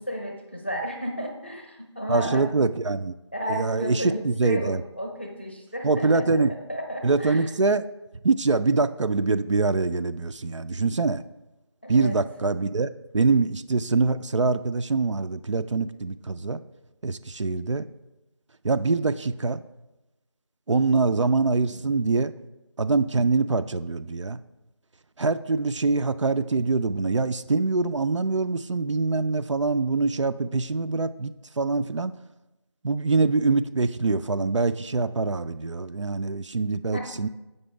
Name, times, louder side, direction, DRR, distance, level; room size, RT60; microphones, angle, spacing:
voice 1, 0.0-2.7 3.3-7.5 11.8-12.2 36.9-37.1, equal, 25° left, 2 dB, 0.6 m, -33 dB
voice 2, 2.1-3.1 3.5-4.8 5.8-6.5 7.0-7.8 8.2-11.2 11.9-16.6 17.0-17.8 18.6-19.6 20.7-22.3 22.8-24.4 25.2-32.1 32.8-37.3, right 3 dB, 85° right, 12 dB, 0.4 m, -24 dB
7.8 x 5.4 x 3.3 m, 1.0 s
figure-of-eight pair, 175°, 15 cm